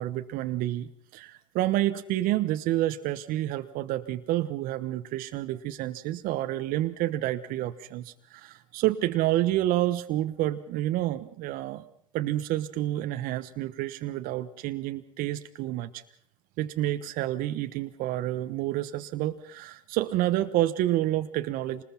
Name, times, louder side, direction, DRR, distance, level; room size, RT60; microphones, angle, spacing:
voice 1, 0.0-11.8 12.1-16.0 16.6-21.8, right 14 dB, 60° right, 9 dB, 1.1 m, -29 dB
26.5 x 20.5 x 5.8 m, 0.63 s
supercardioid pair, 95°, 17 cm